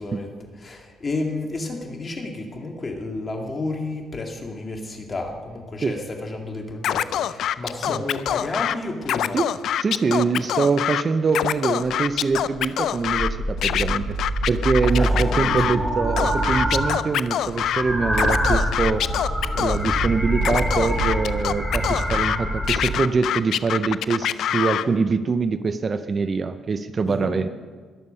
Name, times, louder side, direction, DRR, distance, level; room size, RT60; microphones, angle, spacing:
voice 1, 0.0-9.4 14.9-16.0 27.1-27.3, left 2 dB, 35° left, 2 dB, 2.1 m, -31 dB
Scratching (performance technique), 6.8-8.7 9.0-11.0 11.3-13.3 13.6-15.8 16.2-17.8 18.1-20.1 20.4-22.4 22.7-24.9, left 10 dB, 75° left, 0.4 m, -24 dB
voice 2, 9.3-14.2 14.5-19.1 19.5-24.3 24.5-27.5, right 4 dB, 40° right, 11 dB, 0.6 m, -24 dB
sound 1, 13.0-17.1 17.3-23.0, right 1 dB, ahead, 2.7 m, -25 dB
20.5 x 7.2 x 5.5 m, 1.5 s
cardioid pair, 90°, 0 cm